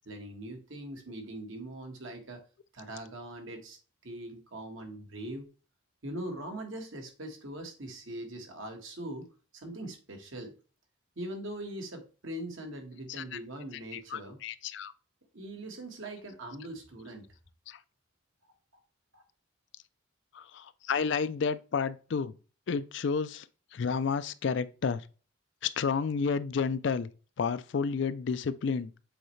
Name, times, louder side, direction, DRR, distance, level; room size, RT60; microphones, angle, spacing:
voice 1, 0.0-2.4 2.7-5.4 6.0-9.3 9.5-10.5 11.1-14.4 15.3-17.3 18.4-18.5 19.1-19.2, right 1 dB, 70° right, 1.5 m, -41 dB
voice 2, 13.1-13.4 13.9-14.9 17.7-17.8 20.3-22.3 22.7-23.5 23.7-25.0 25.6-27.1 27.4-28.9, left 5 dB, 55° left, 0.4 m, -31 dB
7.8 x 4.2 x 3.2 m
head